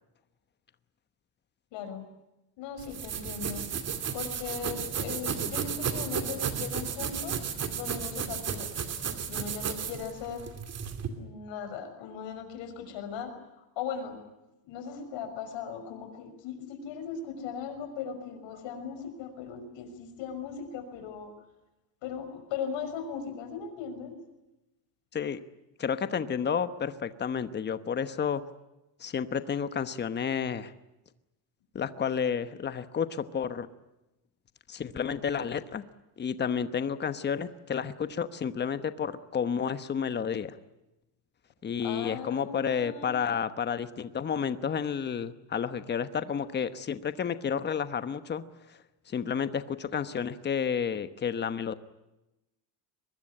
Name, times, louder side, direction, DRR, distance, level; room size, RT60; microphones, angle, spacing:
voice 1, 1.7-2.0 2.6-3.7 4.1-7.3 7.7-8.7 9.3-10.5 11.2-14.2 14.6-21.3 22.0-24.2 41.8-43.2, left 7 dB, 80° left, 8 dB, 5.9 m, -38 dB
sound 1, 2.8-11.1, right 7 dB, 35° right, 2.6 m, -33 dB
voice 2, 25.8-28.4 29.0-30.7 31.7-33.7 34.7-35.8 36.2-40.6 41.6-48.4 49.1-51.7, left 7 dB, 25° left, 12 dB, 1.1 m, -31 dB
23.5 x 21.0 x 9.9 m, 0.96 s
cardioid pair, 175°, 44 cm